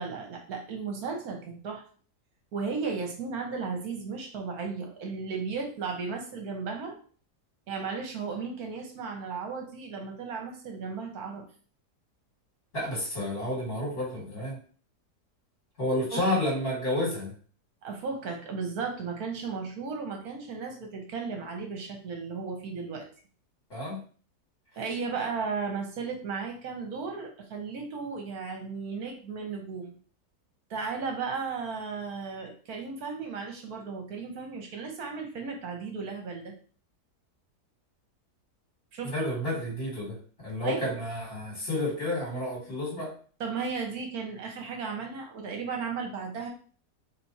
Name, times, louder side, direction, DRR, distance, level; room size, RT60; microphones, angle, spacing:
voice 1, 0.0-1.8 2.5-6.9 7.7-11.4 16.1-16.2 17.8-23.1 24.8-29.9 30.7-36.5 38.9-39.3 40.6-40.9 43.4-46.5, right 5 dB, 65° right, 2 dB, 1.4 m, -35 dB
voice 2, 12.7-14.6 15.8-17.3 23.7-24.0 39.0-40.2 40.4-43.1, left 1 dB, 35° left, -4 dB, 2.4 m, -30 dB
3.5 x 3.1 x 4.1 m, 0.42 s
omnidirectional pair, 1.8 m